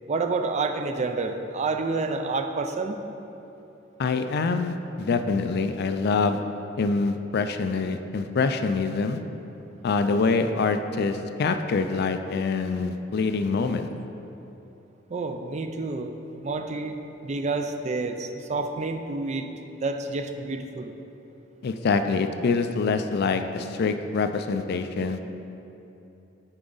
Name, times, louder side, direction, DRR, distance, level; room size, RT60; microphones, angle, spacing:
voice 1, 0.1-3.0 15.1-16.1 16.4-19.5 19.8-20.9, right 3 dB, 35° right, 6 dB, 0.4 m, -29 dB
voice 2, 4.0-6.4 6.8-9.2 9.8-13.9 21.6-25.2, left 4 dB, 55° left, 8 dB, 0.4 m, -25 dB
9.9 x 4.8 x 3.9 m, 3.0 s
head